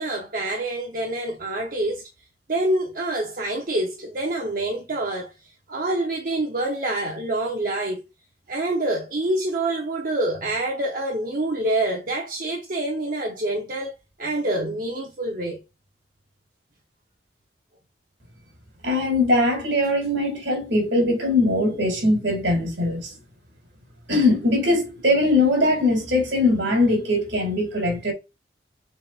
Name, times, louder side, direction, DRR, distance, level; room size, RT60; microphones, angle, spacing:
voice 1, 0.0-2.0 2.5-5.3 5.7-8.0 8.5-13.9 14.2-15.6, right 1 dB, 50° right, 0.8 m, -26 dB
voice 2, 18.8-23.1 24.1-28.1, left 2 dB, 80° right, 2.2 m, -21 dB
6.4 x 3.4 x 2.4 m
head